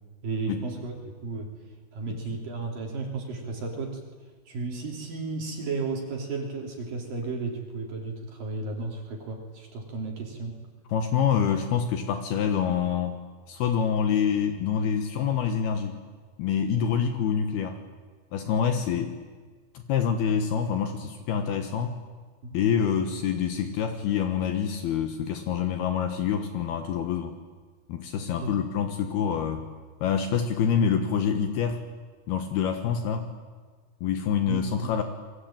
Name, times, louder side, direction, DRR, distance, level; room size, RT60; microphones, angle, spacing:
voice 1, 0.2-1.5 1.9-4.0 4.5-10.6 22.4-22.6 28.4-28.6 34.4-34.9, right 3 dB, 55° right, 1 dB, 4.7 m, -33 dB
voice 2, 10.9-13.2 13.5-16.0 16.4-17.8 18.3-19.1 19.7-22.0 22.5-27.3 27.9-29.7 30.0-31.8 32.3-33.3 34.0-35.0, left 7 dB, 70° left, 7 dB, 3.1 m, -26 dB
29.0 x 23.0 x 8.9 m, 1.5 s
omnidirectional pair, 4.9 m